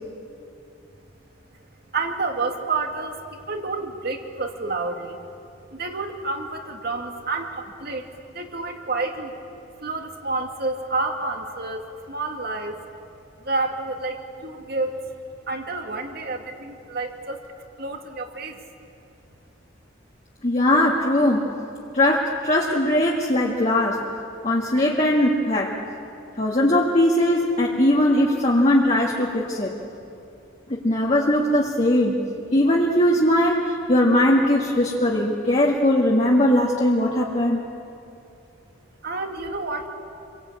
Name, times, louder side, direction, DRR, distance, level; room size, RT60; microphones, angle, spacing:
voice 1, 1.9-5.2 5.7-8.1 8.3-9.3 9.8-12.8 13.4-15.0 15.5-17.4 17.8-18.6 39.0-39.9, right 3 dB, 50° right, 4 dB, 2.3 m, -29 dB
voice 2, 20.4-21.5 21.9-24.0 24.4-25.8 26.4-29.7 30.7-32.2 32.5-37.6, left 1 dB, 35° left, -4 dB, 2.0 m, -20 dB
28.0 x 23.5 x 8.8 m, 2.7 s
head